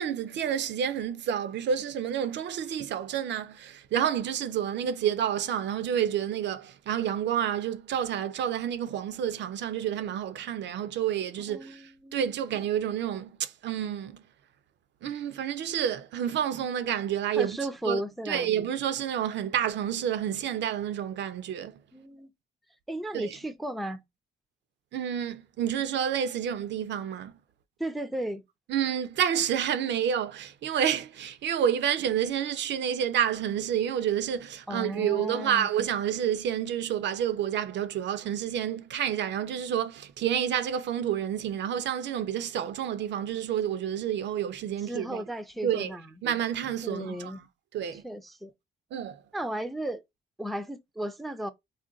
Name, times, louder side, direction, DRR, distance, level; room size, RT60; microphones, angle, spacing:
voice 1, 0.0-14.2 15.0-17.6 17.8-21.8 23.1-23.4 24.9-27.3 28.7-45.2 45.6-46.0 46.2-47.4 47.7-48.0 48.9-49.2, right 9 dB, 65° right, 0.4 m, -29 dB
voice 2, 11.5-12.3 17.4-18.5 21.9-22.3 22.9-24.0 27.8-28.4 34.7-35.7 44.9-46.0 46.8-47.5 48.0-48.5 49.3-50.0 50.4-51.5, right 1 dB, ahead, 0.4 m, -35 dB
2.5 x 2.2 x 3.7 m
cardioid pair, 90°, 20 cm